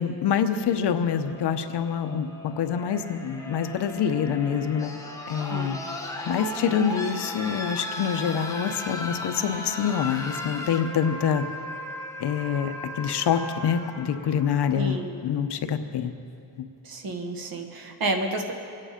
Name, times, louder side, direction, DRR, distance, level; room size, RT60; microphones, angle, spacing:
voice 1, 0.0-5.0 5.3-5.8 6.3-11.4 12.2-16.1, left 8 dB, 70° left, 8 dB, 0.9 m, -26 dB
sound 1, 1.0-15.0 16.2-16.3, left 1 dB, 5° left, 1.2 m, -37 dB
voice 2, 14.7-15.2 16.8-18.5, right 2 dB, 55° right, 4 dB, 1.6 m, -30 dB
24.0 x 9.9 x 5.1 m, 2.6 s
wide cardioid pair, 160°, 42 cm